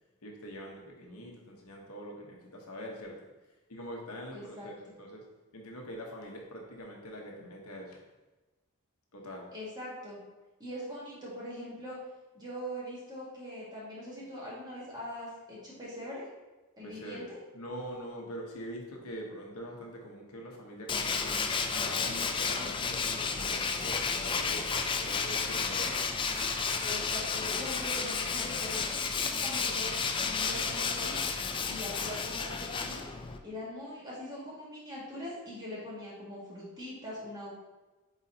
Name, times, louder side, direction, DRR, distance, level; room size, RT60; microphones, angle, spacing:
voice 1, 0.2-3.2 3.7-5.2 5.5-8.0 9.1-9.5 16.8-17.3 17.5-21.4 21.7-26.0, equal, 70° left, 0 dB, 1.1 m, -44 dB
voice 2, 4.3-5.0 9.5-10.2 10.6-12.0 12.3-16.3 16.8-17.4 25.5-25.7 26.8-29.9 30.2-31.2 31.7-33.1 33.4-37.5, left 1 dB, 20° right, -7 dB, 1.9 m, -42 dB
Tools, 20.9-33.4, left 5 dB, 20° left, 0.3 m, -32 dB
sound 1, 22.7-23.0 23.3-28.9 29.1-29.4 30.5-30.6, right 4 dB, 60° right, 0.7 m, -53 dB
8.1 x 4.1 x 2.8 m, 1.2 s
head